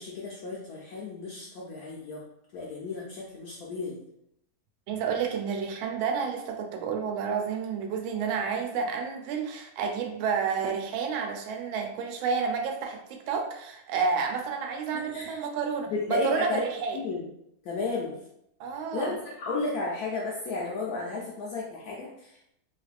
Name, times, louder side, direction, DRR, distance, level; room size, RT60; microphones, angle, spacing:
voice 1, 0.0-2.2 2.5-4.0 14.9-15.4 15.9-16.6 16.9-17.2 17.6-18.1 18.9-22.5, left 3 dB, 90° left, -4 dB, 0.8 m, -33 dB
voice 2, 4.9-17.0 18.6-19.1, right 6 dB, 80° right, 3 dB, 1.3 m, -30 dB
3.3 x 3.1 x 2.4 m, 0.78 s
omnidirectional pair, 2.2 m